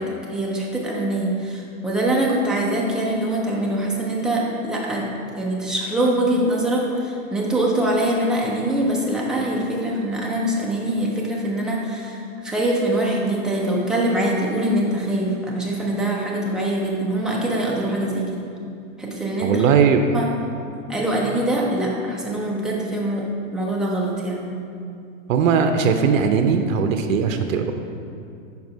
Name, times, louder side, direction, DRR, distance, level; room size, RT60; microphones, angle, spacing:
voice 1, 0.0-18.4 19.0-19.7 20.1-20.3 20.9-24.5, right 1 dB, ahead, -4 dB, 0.5 m, -23 dB
voice 2, 19.4-20.0 25.3-27.7, right 6 dB, 75° right, 6 dB, 0.6 m, -19 dB
5.4 x 4.7 x 4.6 m, 2.5 s
hypercardioid pair, 130°, 40 cm